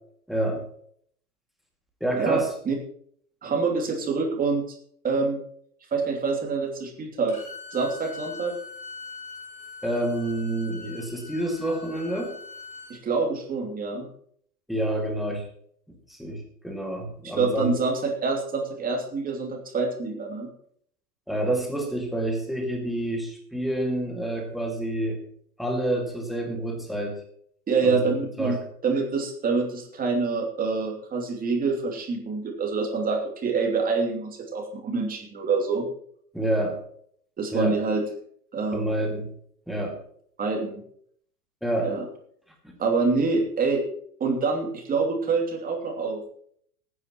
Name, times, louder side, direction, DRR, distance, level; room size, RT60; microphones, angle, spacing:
voice 1, 0.3-0.6 2.0-2.5 9.8-12.3 14.7-15.4 16.1-17.7 21.3-25.2 25.6-27.2 27.8-28.6 36.3-36.8 37.5-37.8 38.7-39.3 39.7-40.0 41.6-41.9 42.6-42.8, right 1 dB, ahead, 2 dB, 2.2 m, -28 dB
voice 2, 2.1-2.7 3.4-4.6 5.0-5.4 5.9-7.4 7.7-8.5 12.9-14.1 17.2-20.5 27.7-28.6 28.8-35.9 37.4-38.0 38.5-39.0 40.4-40.8 41.8-42.0 42.8-43.8 44.2-46.2, right 4 dB, 20° right, 2 dB, 2.8 m, -26 dB
Bowed string instrument, 7.3-13.0, left 4 dB, 15° left, 5.0 m, -42 dB
19.0 x 9.7 x 3.0 m, 0.62 s
figure-of-eight pair, 100°, 46 cm